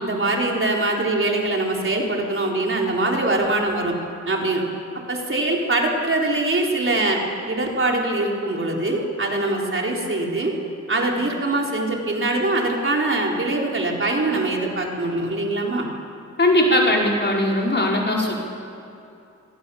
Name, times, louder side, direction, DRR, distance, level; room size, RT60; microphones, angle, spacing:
voice 1, 0.0-3.9 4.3-4.6 5.1-10.5 10.9-15.9, right 2 dB, 45° right, -1 dB, 4.1 m, -23 dB
voice 2, 16.4-18.3, left 1 dB, 35° left, -2 dB, 5.1 m, -19 dB
28.0 x 22.5 x 7.2 m, 2.7 s
wide cardioid pair, 110°, 29 cm